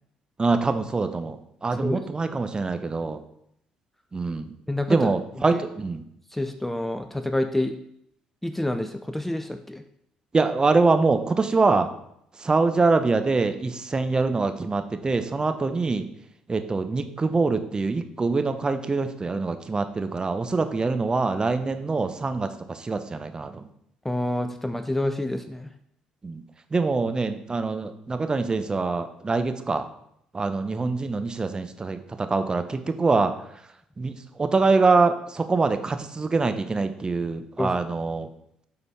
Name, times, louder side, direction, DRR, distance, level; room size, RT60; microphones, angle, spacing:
voice 1, 0.4-3.2 4.1-4.5 4.9-6.0 10.3-11.9 12.4-16.1 16.5-23.7 26.2-26.4 26.7-29.9 30.3-33.4 34.0-38.3, right 3 dB, 25° right, 8 dB, 0.7 m, -24 dB
voice 2, 4.7-5.1 5.5-5.6 6.3-7.8 8.4-9.8 24.0-25.7 37.6-37.7, left 1 dB, 5° left, 8 dB, 0.5 m, -28 dB
8.9 x 4.0 x 3.3 m, 0.72 s
hypercardioid pair, 50°, 3 cm